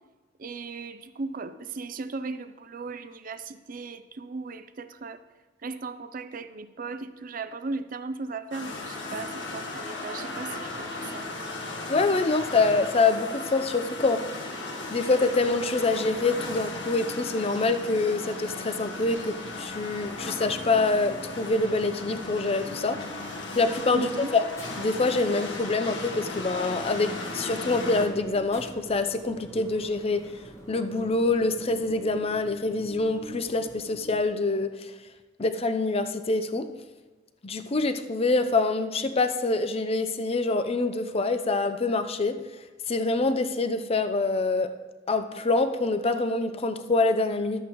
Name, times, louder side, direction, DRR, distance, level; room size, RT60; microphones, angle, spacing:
voice 1, 0.4-5.2 5.6-11.5 23.9-24.3, right 3 dB, 50° right, 12 dB, 0.5 m, -37 dB
sound 1, 8.5-28.1, left 2 dB, 75° left, 1.7 m, -36 dB
voice 2, 11.9-14.2 14.9-23.0 23.5-24.4 24.8-30.3 30.7-34.9 35.4-36.7 37.4-42.4 42.9-44.7 45.1-47.6, left 3 dB, 35° left, 8 dB, 0.6 m, -25 dB
sound 2, 18.9-34.2, equal, 15° left, 1.3 m, -47 dB
12.5 x 8.2 x 3.0 m, 1.3 s
head